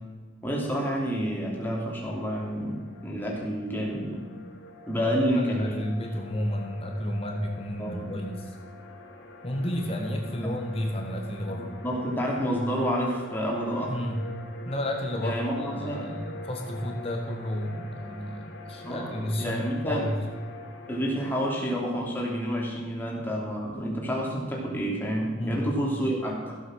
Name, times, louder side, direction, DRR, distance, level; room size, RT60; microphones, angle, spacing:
voice 1, 0.4-4.2 4.9-5.8 7.8-8.1 10.4-10.5 11.5-14.0 15.2-16.1 18.8-20.1 20.9-26.6, equal, 10° left, -2 dB, 2.8 m, -29 dB
sound 1, 1.8-21.7, left 2 dB, 80° left, 2.3 m, -45 dB
voice 2, 4.9-8.5 9.4-11.7 13.9-14.2 14.6-20.1 25.4-25.6, equal, 30° left, 2 dB, 1.6 m, -32 dB
15.0 x 8.1 x 6.5 m, 1.5 s
head